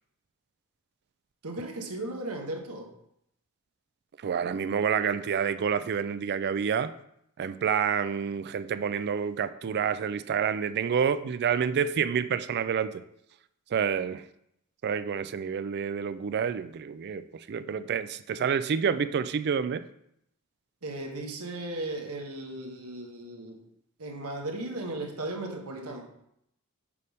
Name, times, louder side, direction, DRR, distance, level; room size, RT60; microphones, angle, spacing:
voice 1, 1.4-2.9 20.8-23.6 24.0-26.1, right 2 dB, 75° right, 2 dB, 1.1 m, -36 dB
voice 2, 4.2-6.9 7.4-13.0 13.7-14.2 14.8-19.8, right 7 dB, 50° right, 13 dB, 0.3 m, -28 dB
6.7 x 3.5 x 5.3 m, 0.76 s
head